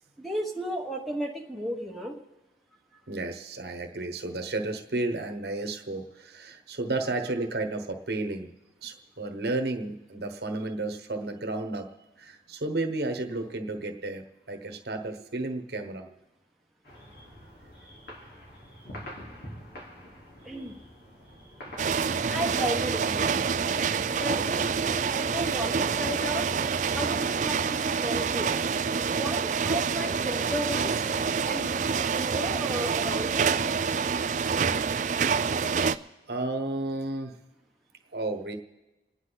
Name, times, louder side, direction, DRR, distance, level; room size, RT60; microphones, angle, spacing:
voice 1, 0.2-2.2 2.9-3.0 20.4-20.8 22.3-23.9 24.2-26.5 26.9-28.6 28.9-31.0 31.4-33.5, equal, ahead, -2 dB, 1.2 m, -34 dB
voice 2, 3.1-8.5 8.8-11.9 12.2-16.1 36.3-37.4 38.1-38.5, right 2 dB, 65° right, 6 dB, 1.2 m, -32 dB
sound 1, 16.8-23.7, equal, 65° left, 3.7 m, -46 dB
sound 2, 21.8-36.0, right 6 dB, 45° right, 0.4 m, -27 dB
28.0 x 9.8 x 4.0 m, 1.1 s
head